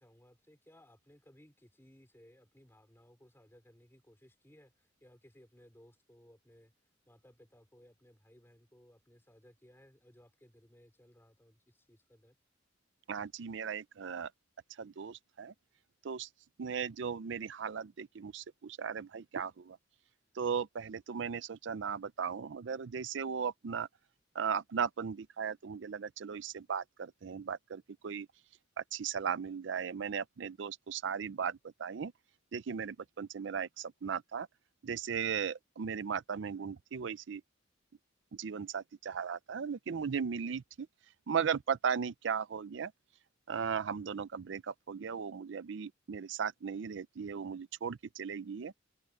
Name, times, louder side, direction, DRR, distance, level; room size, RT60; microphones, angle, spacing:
voice 1, 0.0-6.7 7.1-12.4, equal, 10° left, 4.5 m, -62 dB
voice 2, 13.1-14.3 14.8-15.5 16.0-16.3 16.6-19.8 20.3-23.9 24.3-28.3 28.8-32.1 32.5-34.5 34.8-37.4 38.3-40.9 41.3-42.9 43.5-48.7, right 6 dB, 65° right, 0.5 m, -37 dB
head